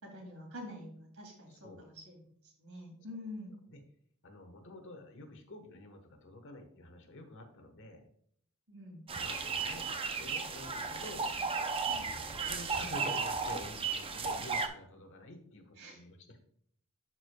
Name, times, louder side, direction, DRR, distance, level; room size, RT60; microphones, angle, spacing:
voice 1, 0.0-3.5 8.7-9.0 11.9-12.1 15.8-16.0, left 1 dB, 65° right, 1 dB, 2.6 m, -47 dB
voice 2, 4.2-8.0 9.1-11.3 12.4-16.4, left 2 dB, 60° left, 5 dB, 1.2 m, -49 dB
sound 1, 9.1-14.7, right 4 dB, 25° right, 0.6 m, -35 dB
11.5 x 4.8 x 2.3 m, 0.64 s
head